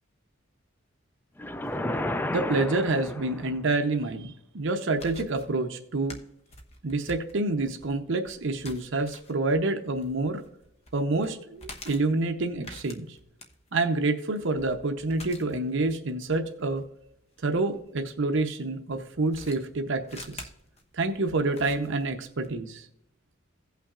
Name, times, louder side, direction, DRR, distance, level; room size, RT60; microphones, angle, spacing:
sound 1, 1.4-3.7, left 1 dB, 10° left, 0.3 m, -32 dB
voice 1, 2.3-6.2 6.8-10.4 10.9-13.2 13.7-16.8 17.4-20.5 20.9-22.9, right 2 dB, 65° right, 5 dB, 0.8 m, -28 dB
sound 2, 4.9-18.1 18.9-22.5, left 2 dB, 30° left, 1.0 m, -48 dB
17.0 x 5.7 x 2.5 m, 0.79 s
head